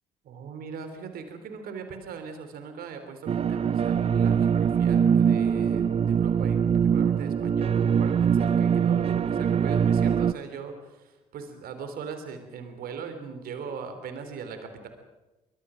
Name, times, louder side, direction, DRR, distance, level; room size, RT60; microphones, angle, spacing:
voice 1, 0.2-14.9, right 5 dB, 55° right, 8 dB, 3.6 m, -40 dB
sound 1, 3.3-10.3, right 7 dB, 30° right, 0.7 m, -23 dB
25.0 x 23.5 x 5.1 m, 1.0 s
figure-of-eight pair, 50°, 19 cm